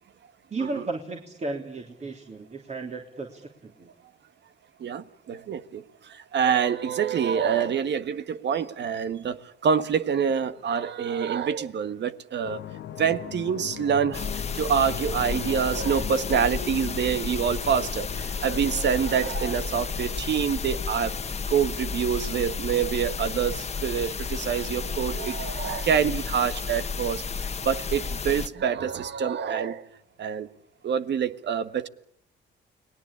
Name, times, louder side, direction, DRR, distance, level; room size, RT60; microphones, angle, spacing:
voice 1, 0.5-3.9, right 3 dB, 35° right, 3.3 m, -34 dB
voice 2, 4.8-5.8 6.3-12.6 13.0-14.3 14.5-21.1 21.5-27.2 27.6-29.8 30.2-30.5 30.8-31.9, right 7 dB, 60° right, 1.6 m, -26 dB
sound 1, 12.4-26.3 26.8-27.3, left 11 dB, 75° left, 1.3 m, -41 dB
sound 2, 14.1-28.5, left 5 dB, 35° left, 1.4 m, -32 dB
30.0 x 20.5 x 8.7 m
cardioid pair, 90°, 20 cm